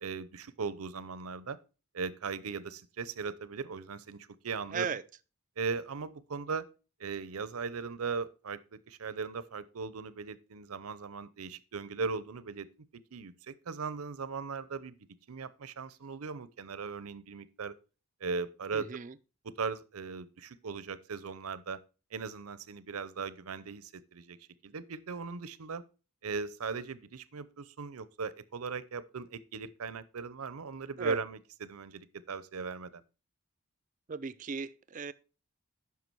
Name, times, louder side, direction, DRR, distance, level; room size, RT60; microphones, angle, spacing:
voice 1, 0.0-1.6 1.9-4.9 5.6-6.7 7.0-12.7 12.9-15.0 15.3-17.7 18.2-18.9 19.4-21.8 22.1-24.4 24.6-25.8 26.2-33.0, right 5 dB, 85° right, 0.7 m, -38 dB
voice 2, 4.7-5.0 18.7-19.1 31.0-31.2 34.1-35.1, right 5 dB, 35° right, 0.4 m, -36 dB
9.4 x 5.9 x 4.5 m
head